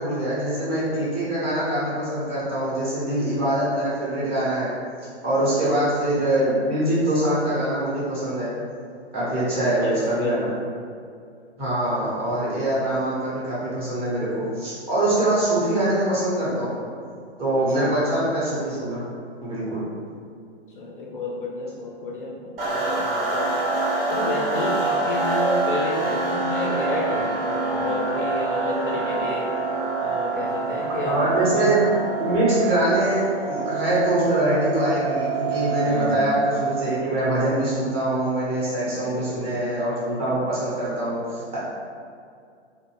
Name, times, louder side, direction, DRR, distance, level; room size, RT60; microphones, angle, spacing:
voice 1, 0.0-4.7 5.2-8.5 9.1-10.5 11.6-16.8 17.4-19.0 19.4-19.9 31.1-31.9 32.1-41.6, right 1 dB, 15° right, -10 dB, 0.7 m, -23 dB
voice 2, 9.1-10.4 17.7-17.9 20.8-23.6 24.1-29.5 30.0-31.8 35.8-36.3 38.8-39.6, left 2 dB, 50° left, -2 dB, 0.4 m, -31 dB
sound 1, 22.6-37.1, right 4 dB, 55° right, 0.9 m, -26 dB
2.3 x 2.1 x 3.2 m, 2.3 s
figure-of-eight pair, 115°, 34 cm